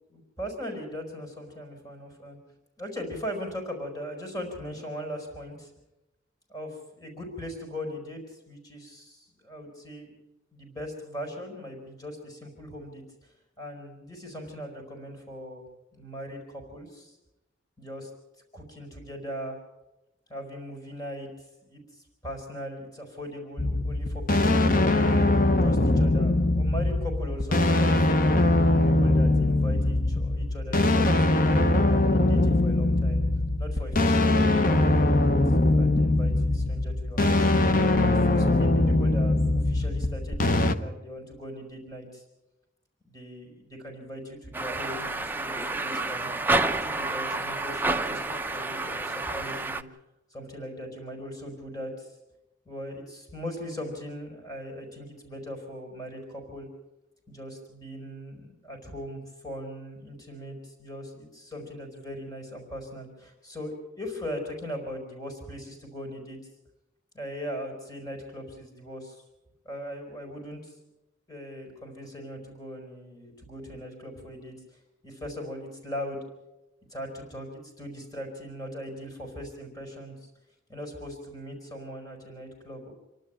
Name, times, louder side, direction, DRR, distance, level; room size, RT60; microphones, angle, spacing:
voice 1, 0.1-2.4 2.8-5.7 6.5-10.1 10.5-15.6 15.9-17.2 17.8-18.1 18.5-19.6 20.3-25.3 25.6-28.1 28.8-33.2 33.6-37.5 38.0-42.2 43.0-49.9 50.3-52.2 52.6-56.7 57.3-66.4 67.1-69.2 69.6-70.8 71.3-76.3 76.9-77.5 77.8-80.1 80.7-82.9, equal, 20° left, 2 dB, 4.9 m, -39 dB
sound 1, 23.6-40.7, left 2 dB, 45° left, 1.0 m, -22 dB
sound 2, 44.5-49.8, right 2 dB, 10° right, 0.6 m, -29 dB
27.0 x 12.0 x 9.0 m, 0.98 s
head